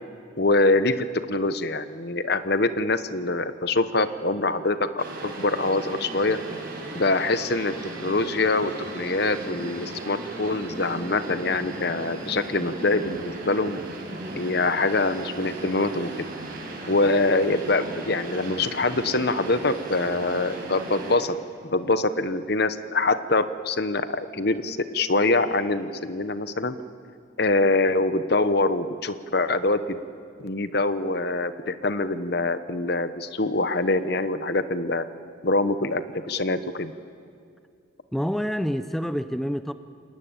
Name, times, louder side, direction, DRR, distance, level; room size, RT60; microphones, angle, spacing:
voice 1, 0.4-6.4 6.9-7.7 8.0-13.8 14.3-16.2 16.9-21.4 21.6-26.8 27.4-30.0 30.4-35.1 35.4-36.9, left 2 dB, 50° left, 12 dB, 1.0 m, -24 dB
sound 1, 5.0-21.2, right 2 dB, 45° right, 5.4 m, -36 dB
voice 2, 38.1-39.7, equal, ahead, 10 dB, 0.6 m, -27 dB
29.0 x 20.5 x 9.0 m, 2.4 s
head